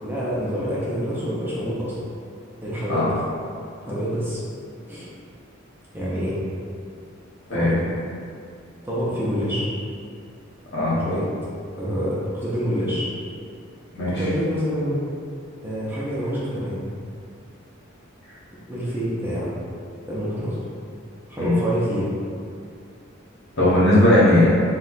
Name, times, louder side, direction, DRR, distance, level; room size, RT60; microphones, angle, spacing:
voice 1, 0.0-2.0 2.6-3.1 3.9-4.4 4.9-5.1 5.9-6.4 7.5-7.8 8.8-9.7 11.0-11.3 11.8-13.1 14.0-15.0 15.6-16.8 18.7-19.5 20.1-20.6 21.3-22.1, equal, 10° right, -8 dB, 0.5 m, -26 dB
voice 2, 13.9-14.2 21.4-21.6 23.6-24.5, left 1 dB, 60° left, -9 dB, 1.0 m, -17 dB
2.8 x 2.1 x 3.9 m, 2.3 s
head